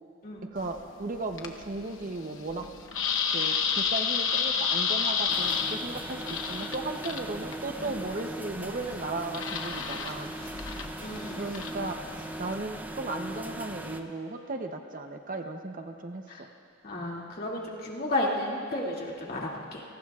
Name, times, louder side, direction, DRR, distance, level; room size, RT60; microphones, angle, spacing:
voice 1, 0.5-2.7 3.3-10.3 11.4-16.5, right 2 dB, 40° right, 5 dB, 0.8 m, -36 dB
sound 1, 0.6-12.5, left 6 dB, 75° left, 1.0 m, -32 dB
sound 2, 5.3-14.0, right 1 dB, 10° right, 0.6 m, -39 dB
voice 2, 11.0-11.5 16.3-16.4 16.8-19.8, left 1 dB, 50° left, -4 dB, 2.5 m, -33 dB
30.0 x 19.0 x 2.4 m, 2.4 s
head